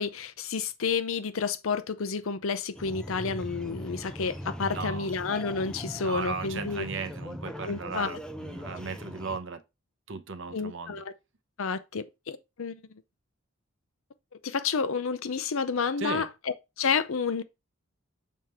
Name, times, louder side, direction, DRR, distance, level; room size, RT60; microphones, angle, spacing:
voice 1, 0.0-6.9 7.7-8.1 10.5-11.1 11.6-12.8 14.4-17.4, left 5 dB, 70° left, 0.6 m, -30 dB
sound 1, 2.7-9.4, equal, 5° left, 0.5 m, -39 dB
voice 2, 4.6-5.1 6.0-9.6 10.1-11.0 16.0-16.3, right 4 dB, 55° right, 0.8 m, -36 dB
6.5 x 3.6 x 4.3 m
head